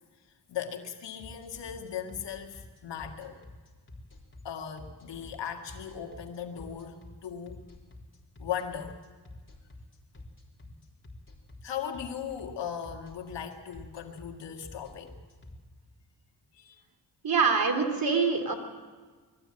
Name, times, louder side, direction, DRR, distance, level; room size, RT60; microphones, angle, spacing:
voice 1, 0.5-3.4 4.4-7.7 8.4-9.0 10.6-10.7 11.6-15.2 16.5-16.8, left 8 dB, 90° left, 3 dB, 2.0 m, -38 dB
sound 1, 1.2-15.5, left 2 dB, 30° left, 4.0 m, -48 dB
voice 2, 17.2-18.5, right 5 dB, 55° right, 5 dB, 3.1 m, -25 dB
21.0 x 14.0 x 8.8 m, 1.5 s
cardioid pair, 60°, 42 cm